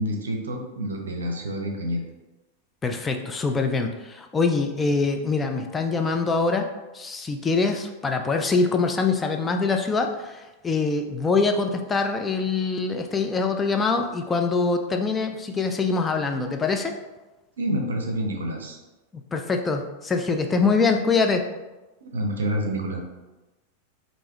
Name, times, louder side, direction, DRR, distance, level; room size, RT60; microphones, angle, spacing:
voice 1, 0.0-2.0 17.6-18.8 22.0-23.0, equal, 70° right, 2 dB, 0.6 m, -28 dB
voice 2, 2.8-6.7 6.9-16.9 19.1-21.4, left 4 dB, 15° left, 4 dB, 0.3 m, -24 dB
3.4 x 2.6 x 3.3 m, 1.1 s
figure-of-eight pair, 90°, 0 cm